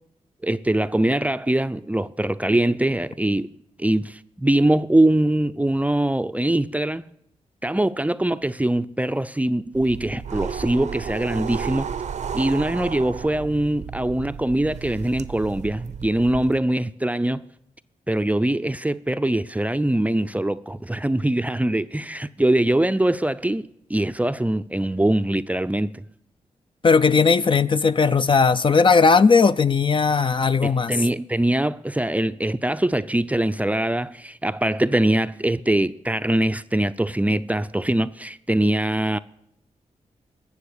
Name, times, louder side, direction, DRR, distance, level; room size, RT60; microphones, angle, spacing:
voice 1, 0.4-3.5 3.8-7.1 7.6-11.9 12.3-17.5 18.1-26.0 30.6-39.2, right 1 dB, 10° right, 0.5 m, -22 dB
sound 1, 9.7-16.6, right 7 dB, 65° right, 0.6 m, -33 dB
voice 2, 26.8-30.9, left 5 dB, 40° left, 0.5 m, -17 dB
19.0 x 7.1 x 6.7 m
cardioid pair, 55°, 13 cm